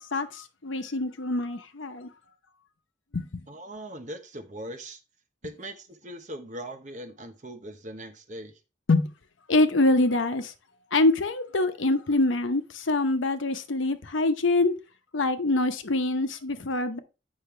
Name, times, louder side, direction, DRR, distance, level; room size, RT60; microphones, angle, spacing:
voice 1, 0.1-2.1 3.1-3.3 8.9-9.1 9.5-10.5 10.9-14.7 15.1-17.0, left 2 dB, 85° left, 0.9 m, -25 dB
voice 2, 3.5-5.0 5.4-8.6, right 1 dB, 40° right, 1.1 m, -40 dB
8.6 x 5.5 x 3.2 m
head